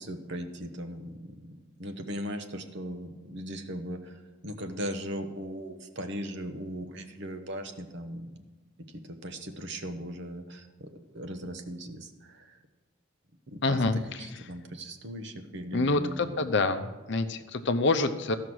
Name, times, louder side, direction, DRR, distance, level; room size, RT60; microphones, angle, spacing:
voice 1, 0.0-1.5 1.8-4.2 4.4-8.3 9.2-12.6 13.5-16.3, equal, 60° right, 7 dB, 1.0 m, -38 dB
voice 2, 13.6-14.3 15.7-18.3, left 3 dB, 60° left, 8 dB, 0.7 m, -27 dB
14.5 x 5.8 x 6.2 m, 1.3 s
head